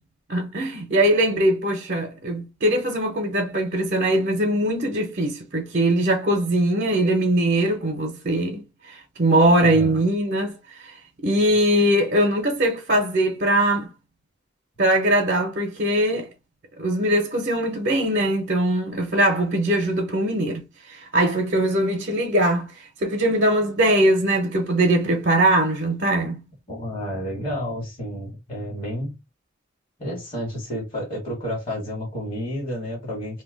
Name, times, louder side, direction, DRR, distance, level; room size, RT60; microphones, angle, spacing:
voice 1, 0.3-10.5 10.8-10.9 11.2-13.9 14.8-16.3 16.8-20.6 20.9-22.7 23.0-26.4, right 1 dB, 55° right, 0.8 m, -21 dB
voice 2, 9.6-10.0 26.7-29.2 30.0-33.4, equal, 30° left, 1.3 m, -30 dB
2.8 x 2.2 x 3.8 m
head